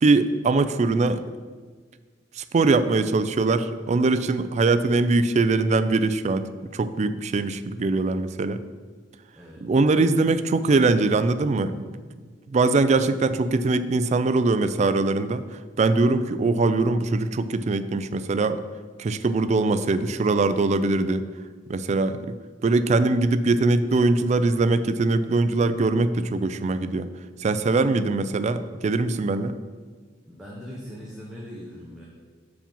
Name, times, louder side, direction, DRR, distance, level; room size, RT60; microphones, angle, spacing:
voice 1, 0.0-1.2 2.4-8.6 9.6-11.9 12.5-18.6 19.0-21.3 21.7-22.4 22.6-27.1 27.4-29.5, right 3 dB, 40° right, 12 dB, 0.3 m, -22 dB
voice 2, 30.3-32.0, equal, 5° right, -5 dB, 1.0 m, -40 dB
7.2 x 4.9 x 5.3 m, 1.5 s
head